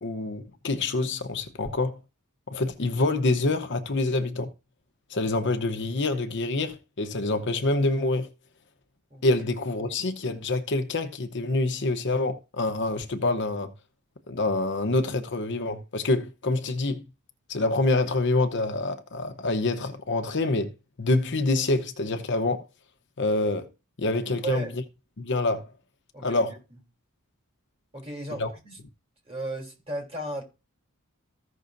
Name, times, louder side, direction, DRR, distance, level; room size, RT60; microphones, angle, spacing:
voice 1, 0.0-2.0 2.5-4.5 5.1-8.3 9.2-13.7 14.3-17.0 17.5-20.7 21.0-22.7 23.2-23.7 24.0-24.7 25.2-25.7 26.2-26.5 28.4-28.5, left 2 dB, 55° left, 0.9 m, -26 dB
voice 2, 26.1-26.4 27.9-28.8 29.2-30.4, right 1 dB, 30° right, 3.4 m, -34 dB
15.0 x 6.2 x 2.6 m
head